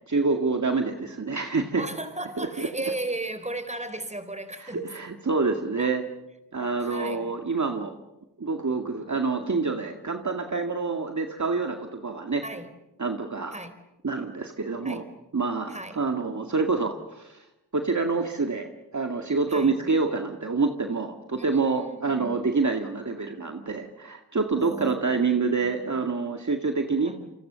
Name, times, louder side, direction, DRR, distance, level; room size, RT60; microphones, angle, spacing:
voice 1, 0.1-1.8 2.4-2.7 4.6-6.0 6.5-7.9 8.4-12.4 13.0-13.5 14.0-15.0 15.3-17.5 17.7-27.1, right 4 dB, 45° right, 4 dB, 2.1 m, -27 dB
voice 2, 1.7-4.8 5.8-5.9 6.6-7.3 12.4-12.7 13.5-13.8 14.8-15.0 15.7-16.0 19.5-19.8 21.4-22.5 24.6-26.0 26.9-27.3, right 2 dB, 15° right, 10 dB, 4.1 m, -36 dB
29.5 x 25.0 x 6.9 m, 0.97 s
cardioid pair, 55°, 39 cm